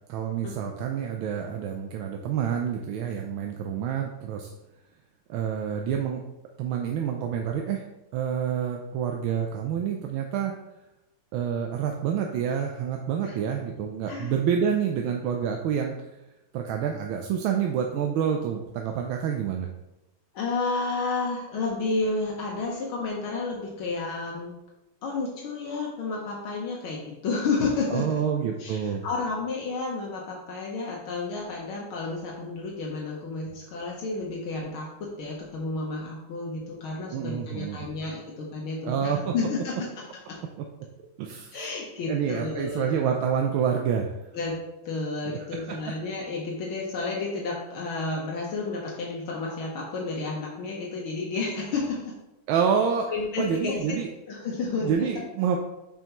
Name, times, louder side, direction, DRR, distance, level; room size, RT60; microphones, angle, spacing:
voice 1, 0.1-4.5 5.3-6.2 6.6-7.8 8.1-10.5 11.3-15.9 16.5-19.7 27.9-29.0 37.1-37.9 38.8-39.3 41.2-41.6 42.1-44.1 45.2-45.6 52.5-53.1 53.4-54.1 54.8-55.6, right 7 dB, 80° right, 2 dB, 1.4 m, -28 dB
voice 2, 20.3-24.6 25.0-28.2 28.6-34.9 35.2-39.9 40.3-40.4 41.5-43.0 44.3-44.6 44.9-52.1 53.1-54.0 54.3-55.1, left 3 dB, 75° left, -2 dB, 1.8 m, -31 dB
6.9 x 5.7 x 3.0 m, 0.95 s
omnidirectional pair, 2.3 m